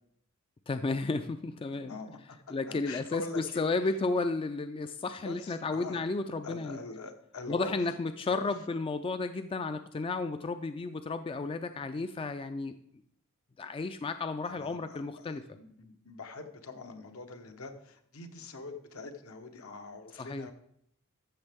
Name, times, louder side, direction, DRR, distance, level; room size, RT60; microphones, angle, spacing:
voice 1, 0.7-2.0 2.5-6.8 7.5-12.8 13.6-15.4 20.2-20.5, left 3 dB, 25° left, 10 dB, 0.3 m, -33 dB
voice 2, 1.9-2.2 2.7-3.7 5.2-6.0 6.4-7.8 8.2-8.4 14.4-15.3 15.5-20.5, left 3 dB, 75° left, 6 dB, 1.1 m, -44 dB
13.5 x 6.7 x 3.5 m, 0.72 s
head